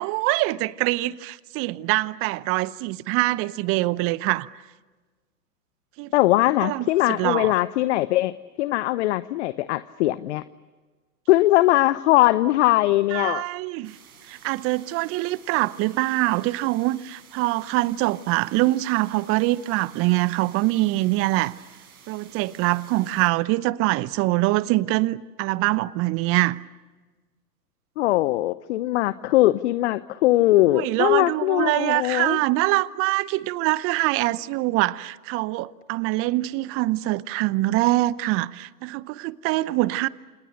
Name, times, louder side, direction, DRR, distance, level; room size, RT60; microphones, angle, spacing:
voice 1, 0.0-4.5 6.0-6.1 6.6-7.5 13.1-14.0 14.3-21.6 22.1-26.6 30.7-40.1, right 19 dB, 30° right, 0.8 m, -24 dB
voice 2, 6.1-10.4 11.3-13.4 28.0-32.4, left 17 dB, 45° left, 0.8 m, -21 dB
sound 1, 13.8-23.3, right 7 dB, 65° right, 7.0 m, -51 dB
28.5 x 28.5 x 6.6 m
figure-of-eight pair, 105°, 46 cm